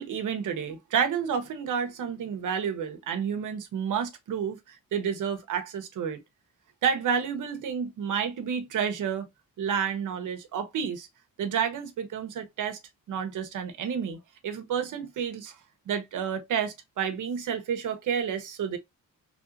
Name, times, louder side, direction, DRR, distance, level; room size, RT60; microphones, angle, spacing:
voice 1, 0.0-6.2 6.8-9.3 9.6-11.1 11.4-12.8 13.1-15.6 15.9-18.8, right 7 dB, 70° right, 0.8 m, -30 dB
3.2 x 2.7 x 2.5 m
cardioid pair, 85°, 32 cm